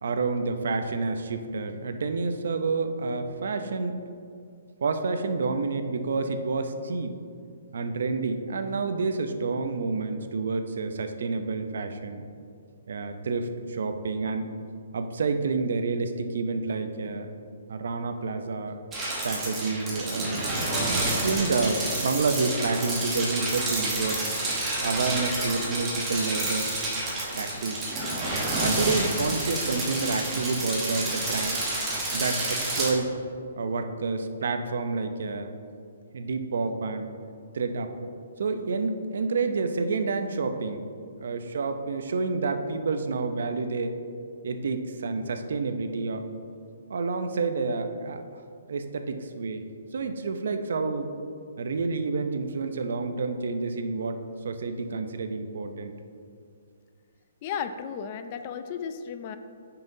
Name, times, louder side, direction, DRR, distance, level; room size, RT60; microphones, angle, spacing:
voice 1, 0.0-4.1 4.8-7.2 7.7-12.3 12.9-14.5 14.9-17.3 17.7-18.8 19.2-20.5 21.0-24.2 24.8-26.7 27.3-27.9 28.6-31.6 32.1-33.1 33.6-35.5 36.1-37.1 37.5-38.0 38.4-40.8 41.2-43.9 44.4-46.3 46.9-48.2 48.7-49.6 49.9-51.1 51.6-55.9, right 4 dB, 65° right, 8 dB, 0.6 m, -29 dB
sound 1, 18.9-32.9, right 2 dB, 10° right, 1.1 m, -29 dB
voice 2, 57.4-59.4, left 7 dB, 30° left, 9 dB, 0.3 m, -34 dB
9.1 x 5.7 x 2.7 m, 2.4 s
hypercardioid pair, 170°, 0 cm